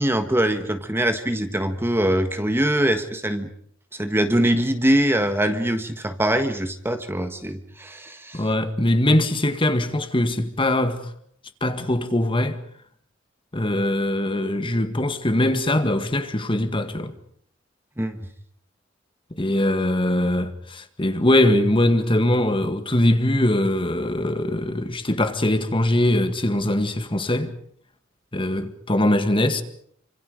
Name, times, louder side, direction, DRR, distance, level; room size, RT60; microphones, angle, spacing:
voice 1, 0.0-3.5 3.9-8.4 18.0-18.2, right 1 dB, 10° right, 1.5 m, -23 dB
voice 2, 8.3-11.1 11.6-12.6 13.5-17.1 19.3-27.5 28.3-29.6, left 1 dB, 25° left, 1.9 m, -22 dB
28.5 x 26.0 x 5.1 m
head